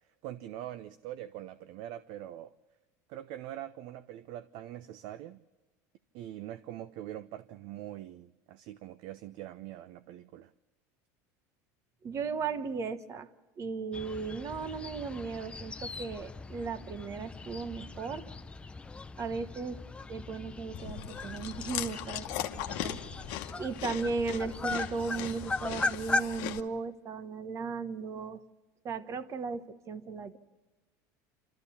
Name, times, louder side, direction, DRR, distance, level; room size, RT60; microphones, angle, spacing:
voice 1, 0.2-2.6 3.1-5.4 6.1-10.5, right 13 dB, 60° right, 0.6 m, -43 dB
voice 2, 12.0-13.3 13.6-18.3 19.2-19.8 20.1-23.0 23.6-28.4 28.8-30.4, right 5 dB, 35° right, 1.1 m, -36 dB
sound 1, 13.9-26.2, left 2 dB, 15° left, 0.6 m, -38 dB
Chewing mastication, 20.7-26.6, left 13 dB, 65° left, 1.1 m, -39 dB
27.5 x 13.5 x 7.0 m
supercardioid pair, 115°, 9 cm